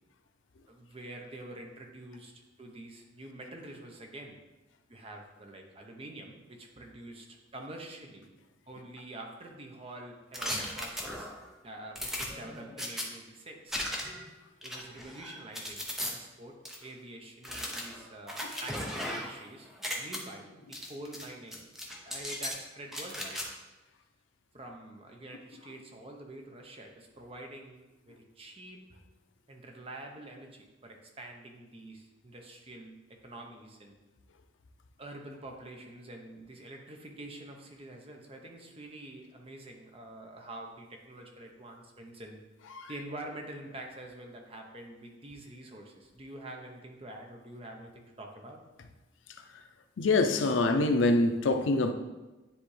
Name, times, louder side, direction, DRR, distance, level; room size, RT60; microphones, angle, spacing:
voice 1, 0.7-2.3 2.6-4.4 4.9-8.3 8.7-11.3 11.6-13.8 14.6-21.7 22.0-23.4 24.5-29.0 29.5-33.0 33.2-34.0 35.0-42.4 42.9-48.6, right 1 dB, 30° right, 0.8 m, -46 dB
sound 1, 10.3-11.4 12.0-13.1 13.7-14.3 14.6-16.1 16.7-16.8 17.4-19.4 19.7-20.2 20.7-21.3 21.5-22.6 22.9-23.5, equal, ahead, 0.7 m, -37 dB
voice 2, 50.0-51.9, left 2 dB, 85° left, 0.5 m, -25 dB
9.8 x 3.4 x 3.2 m
head